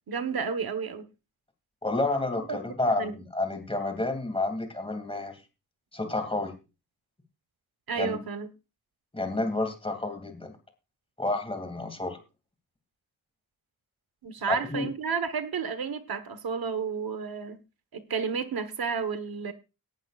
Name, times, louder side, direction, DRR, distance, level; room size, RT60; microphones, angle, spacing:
voice 1, 0.1-1.0 2.5-2.6 3.0-3.1 7.9-8.5 14.2-17.6 17.9-19.5, right 5 dB, 85° right, 1.4 m, -31 dB
voice 2, 1.8-5.4 5.9-6.5 8.0-8.1 9.1-10.6 11.2-12.2 14.5-14.9, left 2 dB, 15° left, 2.5 m, -30 dB
18.0 x 11.5 x 2.5 m
wide cardioid pair, 170°, 35 cm